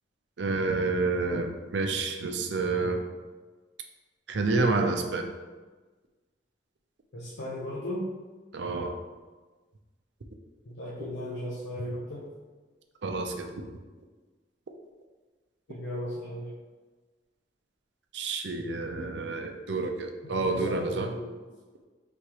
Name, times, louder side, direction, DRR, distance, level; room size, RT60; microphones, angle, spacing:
voice 1, 0.4-3.0 4.3-5.3 8.5-8.9 13.0-13.5 18.1-21.1, right 3 dB, 75° right, 4 dB, 0.5 m, -29 dB
voice 2, 7.1-8.1 10.7-12.3 15.7-16.5 20.2-21.3, left 1 dB, 90° left, -6 dB, 0.7 m, -36 dB
4.8 x 3.5 x 3.0 m, 1.3 s
head